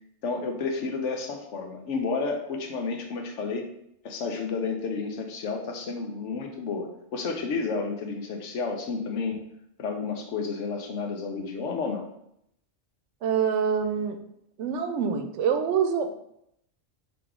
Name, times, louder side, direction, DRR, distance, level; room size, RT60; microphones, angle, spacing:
voice 1, 0.2-3.7 4.0-9.4 9.8-12.1, left 4 dB, 85° left, 3 dB, 1.1 m, -31 dB
voice 2, 13.2-14.2 14.6-16.1, right 7 dB, 80° right, 7 dB, 0.9 m, -25 dB
5.0 x 2.9 x 3.6 m, 0.76 s
omnidirectional pair, 1.2 m